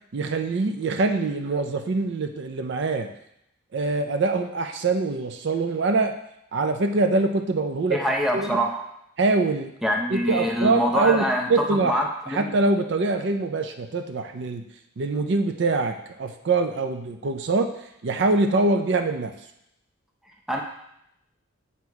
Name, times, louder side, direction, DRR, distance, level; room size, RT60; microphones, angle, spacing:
voice 1, 0.1-3.1 3.7-6.1 6.5-8.0 8.3-8.6 9.2-9.7 10.1-12.0 12.3-14.6 15.0-17.7 18.0-19.3, right 3 dB, 55° right, 6 dB, 0.4 m, -24 dB
voice 2, 7.9-8.8 9.8-12.4 20.5-20.6, equal, ahead, 0 dB, 0.5 m, -25 dB
7.9 x 2.9 x 4.6 m, 0.78 s
head